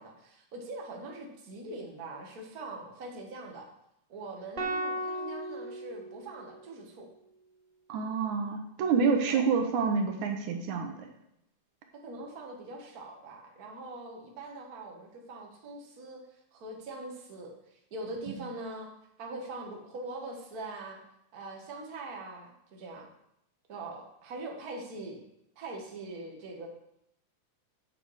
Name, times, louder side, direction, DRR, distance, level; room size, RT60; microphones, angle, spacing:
voice 1, 0.0-3.7 4.1-7.1 9.3-9.5 12.0-16.2 16.5-18.9 19.2-21.0 21.3-23.1 23.7-25.2 25.5-26.7, right 2 dB, 40° right, 0 dB, 1.6 m, -42 dB
sound 1, 4.6-6.9, right 1 dB, 55° right, 0.5 m, -36 dB
voice 2, 7.9-11.1, right 5 dB, 75° right, 5 dB, 2.3 m, -28 dB
8.6 x 7.7 x 4.8 m, 0.79 s
omnidirectional pair, 3.5 m